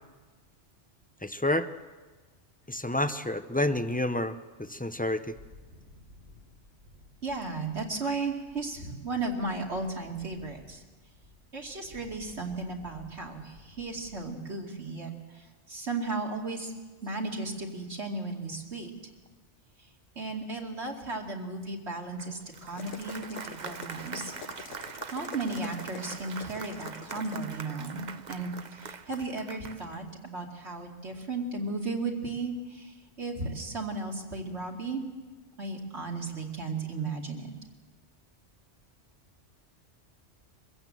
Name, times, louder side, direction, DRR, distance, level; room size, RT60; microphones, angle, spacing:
voice 1, 1.2-1.7 2.7-5.3, left 1 dB, 10° left, 10 dB, 0.4 m, -29 dB
sound 1, 5.3-14.3, left 2 dB, 90° right, 4.8 m, -55 dB
voice 2, 7.2-10.8 11.5-16.7 17.0-18.9 20.2-24.3 25.1-28.0 28.3-35.0 35.6-37.5, right 3 dB, 65° right, 0 dB, 2.8 m, -35 dB
Applause, 22.2-30.1, right 5 dB, 45° right, 0.8 m, -43 dB
sound 2, 22.8-27.6, left 7 dB, 90° left, 1.2 m, -46 dB
23.5 x 15.5 x 7.6 m, 1.3 s
omnidirectional pair, 1.2 m